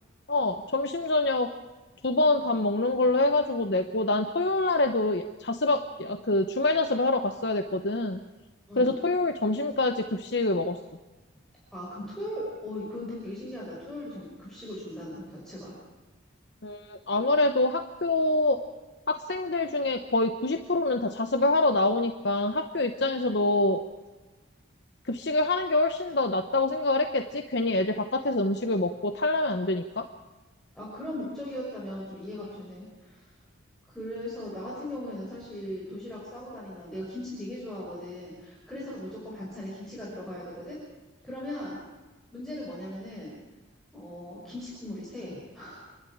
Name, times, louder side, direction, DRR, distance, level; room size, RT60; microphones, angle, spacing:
voice 1, 0.3-1.5 2.0-8.2 8.8-10.8 16.6-18.6 19.1-23.8 25.1-30.0, left 2 dB, 55° left, 6 dB, 1.0 m, -26 dB
voice 2, 11.7-15.7 30.7-33.3 33.9-40.8 41.2-41.8 42.3-43.3 43.9-45.9, left 1 dB, ahead, -7 dB, 5.9 m, -38 dB
28.0 x 12.0 x 8.8 m, 1.2 s
head